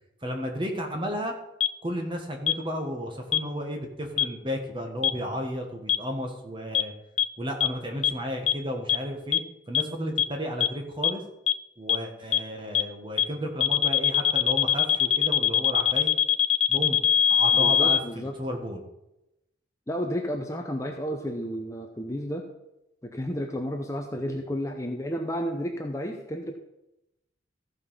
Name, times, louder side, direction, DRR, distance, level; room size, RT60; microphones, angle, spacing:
voice 1, 0.2-1.3 1.8-6.9 7.4-9.4 9.7-11.2 11.8-16.1 16.7-17.0 17.3-18.8, equal, 25° right, 3 dB, 1.5 m, -33 dB
sound 1, 1.6-1.7 2.5-2.6 3.3-3.4 4.2-4.3 5.0-5.1 5.9-6.0 6.7-6.8 7.2-7.3 7.6-7.7 8.0-8.1 8.5-8.6 8.9-9.0 9.3-9.4 9.7-9.8 10.2-10.3 10.6-10.7 11.0-11.1 11.5-11.6 11.9-12.0 12.3-12.4 12.7-12.8 13.2-13.3 13.6-18.0, left 10 dB, 35° left, 0.3 m, -21 dB
voice 2, 17.5-18.4 19.9-22.5 23.0-26.6, equal, 15° left, 3 dB, 0.7 m, -32 dB
14.5 x 5.3 x 5.6 m, 0.91 s
head